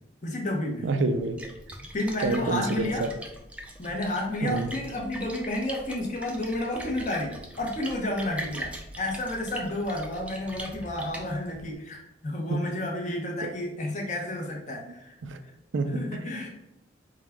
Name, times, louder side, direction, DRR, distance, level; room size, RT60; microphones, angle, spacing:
voice 1, 0.2-0.8 1.9-3.0 3.8-8.7 9.0-15.2 15.4-15.5 15.9-16.5, left 1 dB, 40° left, 0 dB, 0.8 m, -31 dB
voice 2, 0.8-1.5 2.2-3.1 4.4-4.7 12.5-12.6 13.4-13.5 15.2-15.4 15.7-16.5, right 3 dB, 80° right, 9 dB, 0.4 m, -28 dB
Splash splatter, 1.1-11.7, right 1 dB, 5° right, 0.3 m, -42 dB
4.7 x 2.2 x 3.5 m, 0.87 s
head